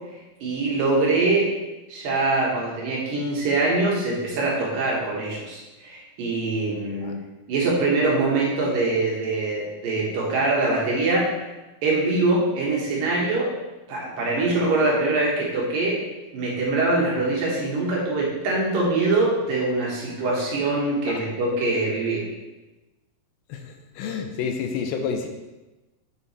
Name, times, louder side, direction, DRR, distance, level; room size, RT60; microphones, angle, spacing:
voice 1, 0.4-1.5 1.9-7.1 7.5-11.3 11.8-13.5 13.9-16.0 16.3-22.3, right 2 dB, 65° right, -4 dB, 3.1 m, -23 dB
voice 2, 24.0-25.3, left 6 dB, 80° left, 4 dB, 2.4 m, -28 dB
8.1 x 6.9 x 3.3 m, 1.1 s
omnidirectional pair, 4.4 m